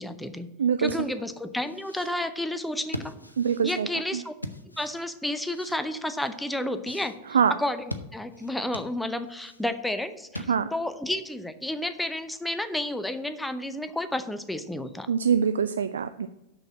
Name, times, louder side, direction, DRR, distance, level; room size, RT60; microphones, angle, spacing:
voice 1, 0.0-0.5 0.8-3.1 3.6-4.3 4.8-7.1 7.6-7.8 8.1-15.1, left 1 dB, 5° left, 10 dB, 0.7 m, -31 dB
voice 2, 0.6-1.0 3.4-4.2 7.3-7.5 10.5-10.7 15.1-16.3, right 7 dB, 70° right, 11 dB, 0.3 m, -24 dB
sound 1, 0.8-10.9, left 1 dB, 85° left, 0.7 m, -42 dB
6.4 x 6.2 x 7.3 m, 0.96 s
figure-of-eight pair, 90°, 0 cm